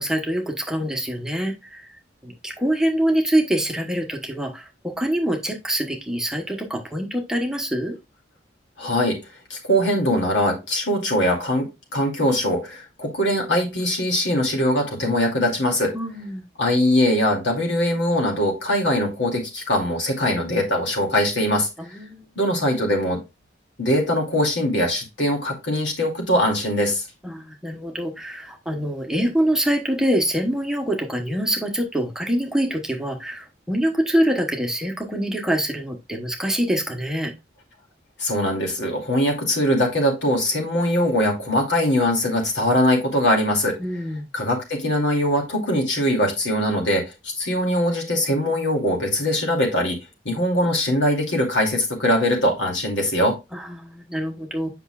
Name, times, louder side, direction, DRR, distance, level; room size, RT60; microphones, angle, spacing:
voice 1, 0.0-1.9 2.2-8.0 15.9-16.5 21.8-22.3 27.2-37.3 43.8-44.2 53.5-54.7, right 1 dB, 5° right, 2 dB, 1.0 m, -25 dB
voice 2, 8.8-9.2 9.5-15.9 16.6-21.7 22.4-23.2 23.8-27.0 38.2-43.8 44.3-50.0 50.2-53.4, left 1 dB, 85° left, 0 dB, 2.5 m, -22 dB
8.0 x 5.7 x 2.3 m, 0.24 s
head